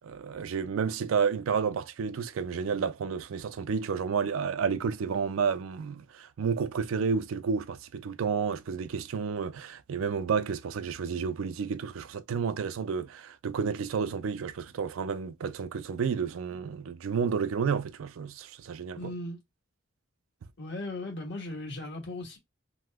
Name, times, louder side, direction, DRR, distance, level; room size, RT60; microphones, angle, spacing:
voice 1, 0.0-19.0, right 6 dB, 80° right, 0.4 m, -31 dB
voice 2, 18.9-19.4 20.6-22.4, left 2 dB, 55° left, 1.5 m, -37 dB
2.8 x 2.1 x 3.4 m
head